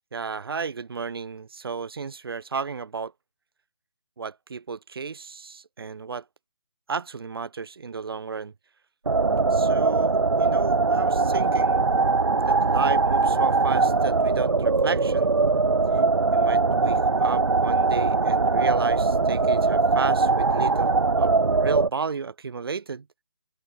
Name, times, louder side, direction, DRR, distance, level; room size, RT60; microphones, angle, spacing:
voice 1, 0.1-3.1 4.2-6.2 6.9-8.5 9.5-11.9 12.5-15.3 16.3-21.3 21.6-23.1, right 5 dB, 55° right, 6.3 m, -33 dB
sound 1, 9.1-21.9, right 3 dB, 80° right, 1.9 m, -21 dB
open air
figure-of-eight pair, 160°, 15 cm